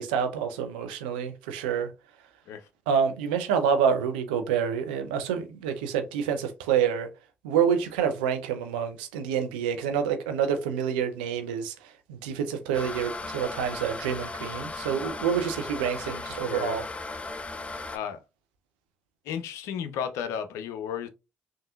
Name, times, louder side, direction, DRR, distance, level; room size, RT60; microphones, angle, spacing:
voice 1, 0.0-1.9 2.9-7.1 7.4-16.8, right 7 dB, 90° right, 0.4 m, -27 dB
sound 1, 12.7-18.0, left 3 dB, 25° left, 0.5 m, -36 dB
voice 2, 16.1-16.8 17.9-18.2 19.2-21.1, left 8 dB, 75° left, 0.5 m, -34 dB
3.6 x 2.6 x 2.3 m
hypercardioid pair, 45°, 5 cm